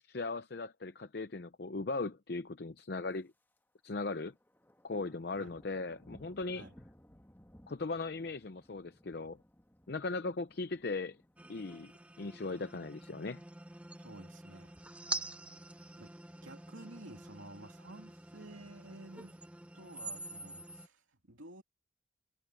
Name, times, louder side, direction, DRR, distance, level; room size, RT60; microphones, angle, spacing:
voice 1, 0.1-3.3 3.8-4.3 4.8-6.7 7.7-9.4 9.9-11.2 11.5-11.9 12.2-13.4, left 3 dB, 55° left, 0.6 m, -38 dB
Thunder, 3.1-3.6 3.9-14.3 14.7-15.0 15.5-15.9 16.2-16.3 16.4-16.5 16.9-17.5 18.3-19.2, equal, 10° left, 1.4 m, -62 dB
sound 1, 11.4-20.9, right 2 dB, 5° right, 0.6 m, -46 dB
voice 2, 13.9-14.8 15.7-16.1 16.4-19.4 19.7-21.6, right 2 dB, 90° right, 2.9 m, -52 dB
head